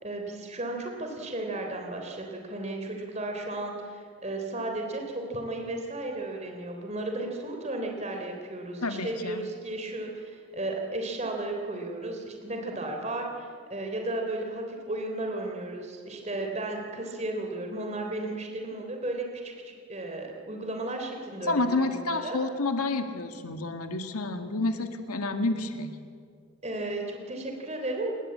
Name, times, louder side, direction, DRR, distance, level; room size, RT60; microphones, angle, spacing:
voice 1, 0.0-22.4 26.6-28.1, right 2 dB, 30° right, 2 dB, 3.4 m, -34 dB
voice 2, 8.8-9.4 21.4-25.9, left 2 dB, 90° left, 6 dB, 2.0 m, -29 dB
28.5 x 20.5 x 8.7 m, 2.2 s
head